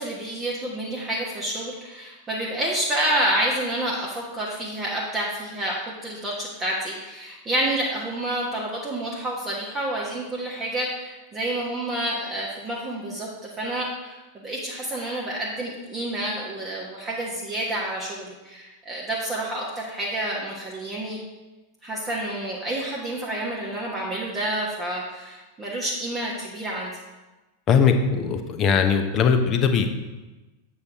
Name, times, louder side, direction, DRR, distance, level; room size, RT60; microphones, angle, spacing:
voice 1, 0.0-13.3 13.6-21.2 21.8-26.9, right 1 dB, 20° right, -4 dB, 1.3 m, -29 dB
voice 2, 27.7-29.9, left 6 dB, 30° left, 6 dB, 0.8 m, -20 dB
8.1 x 6.8 x 3.5 m, 1.1 s
figure-of-eight pair, 90°, 0 cm